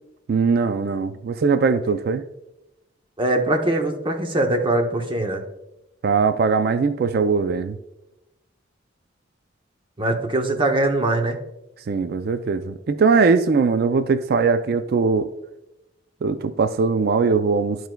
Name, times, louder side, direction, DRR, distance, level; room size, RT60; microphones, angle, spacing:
voice 1, 0.3-2.2 6.0-7.8 11.9-15.3 16.2-17.9, right 4 dB, 55° right, 11 dB, 0.3 m, -20 dB
voice 2, 3.2-5.4 10.0-11.4, right 1 dB, 25° right, 4 dB, 0.7 m, -22 dB
12.5 x 4.6 x 2.2 m, 0.91 s
head